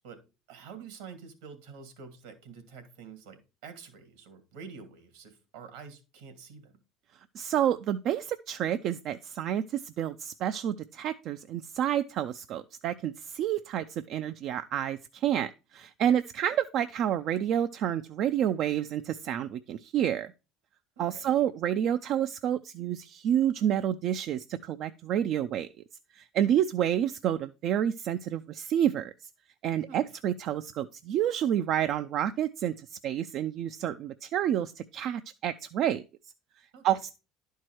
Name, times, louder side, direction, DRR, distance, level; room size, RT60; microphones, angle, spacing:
voice 1, 0.0-6.8 21.0-21.3 29.9-30.1 36.7-36.9, right 6 dB, 80° right, 2.2 m, -48 dB
voice 2, 7.3-20.3 21.0-25.7 26.1-29.1 29.6-36.0 36.8-37.1, right 10 dB, 55° right, 0.4 m, -29 dB
11.0 x 4.6 x 4.5 m
hypercardioid pair, 80°, 0 cm